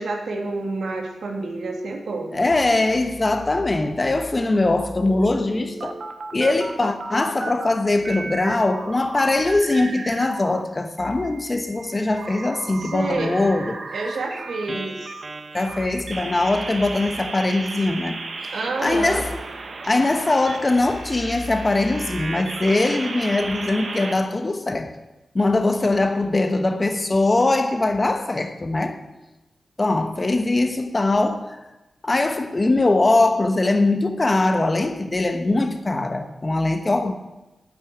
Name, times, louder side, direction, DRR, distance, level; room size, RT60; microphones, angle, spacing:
voice 1, 0.0-2.3 12.8-13.5 13.9-15.1 18.5-19.3, right 3 dB, 75° right, 2.4 m, -29 dB
voice 2, 2.3-6.0 6.3-13.8 14.7-14.8 15.5-18.2 18.8-19.3 19.9-24.9 25.3-29.0 29.8-31.6 32.0-37.1, left 2 dB, 25° left, 1.1 m, -21 dB
sound 1, 5.1-7.7 8.0-10.6 11.0-24.1, right 3 dB, 50° right, 1.3 m, -35 dB
9.6 x 9.0 x 9.0 m
wide cardioid pair, 130°, 0 cm